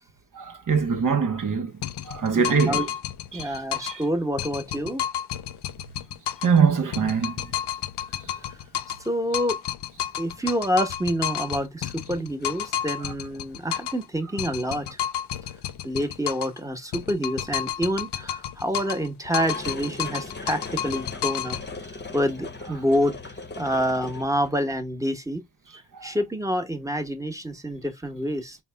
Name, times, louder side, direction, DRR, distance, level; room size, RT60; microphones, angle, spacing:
voice 1, 0.3-1.7 2.0-2.8 3.3-3.5 3.8-4.0 6.4-7.4 25.9-26.1, right 6 dB, 50° right, 0.7 m, -23 dB
sound 1, 1.8-4.0 4.4-6.6 6.9-9.1 9.3-14.0 14.4-16.6 16.9-19.1 19.3-21.7, left 11 dB, 75° left, 0.5 m, -31 dB
voice 2, 2.3-2.9 3.3-5.0 9.0-9.6 10.2-15.0 15.8-21.6 22.1-25.4 26.0-28.6, equal, 10° right, 1.0 m, -27 dB
sound 2, 12.4-12.5 13.0-13.2 13.7-13.8 14.9-15.0 16.0-16.1 17.0-17.1 19.2-24.7, left 3 dB, 25° left, 0.8 m, -39 dB
4.0 x 2.1 x 3.3 m
cardioid pair, 40°, 41 cm